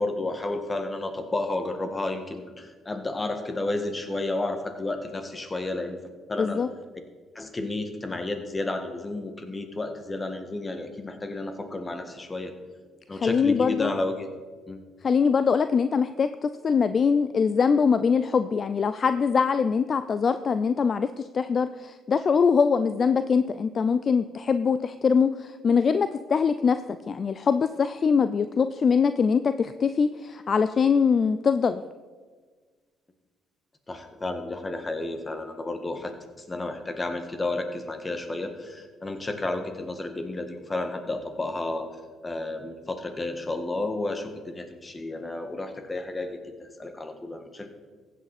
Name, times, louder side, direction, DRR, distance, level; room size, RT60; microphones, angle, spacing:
voice 1, 0.0-6.0 6.3-6.6 7.3-12.5 13.1-14.3 14.7-14.8 33.9-36.1 36.5-41.9 42.2-47.7, left 2 dB, 25° left, 7 dB, 1.7 m, -31 dB
voice 2, 6.4-6.7 13.1-13.9 15.0-26.8 27.1-31.8, left 6 dB, 45° left, 12 dB, 0.4 m, -23 dB
15.0 x 8.3 x 4.2 m, 1.5 s
supercardioid pair, 70°, 0 cm